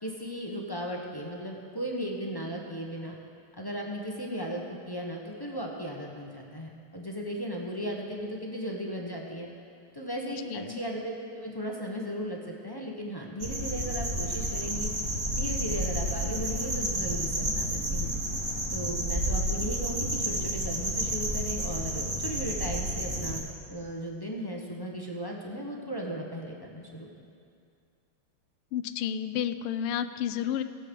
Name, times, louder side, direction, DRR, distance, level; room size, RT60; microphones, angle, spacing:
voice 1, 0.0-3.2 3.6-4.6 4.9-9.5 9.9-14.9 15.3-18.1 18.7-27.2, equal, 20° left, -1 dB, 0.6 m, -36 dB
voice 2, 10.5-10.8 28.7-30.6, left 9 dB, 85° left, 12 dB, 1.5 m, -31 dB
sound 1, 13.4-23.4, right 1 dB, 30° right, 2.0 m, -30 dB
18.0 x 7.8 x 5.3 m, 2.3 s
omnidirectional pair, 2.3 m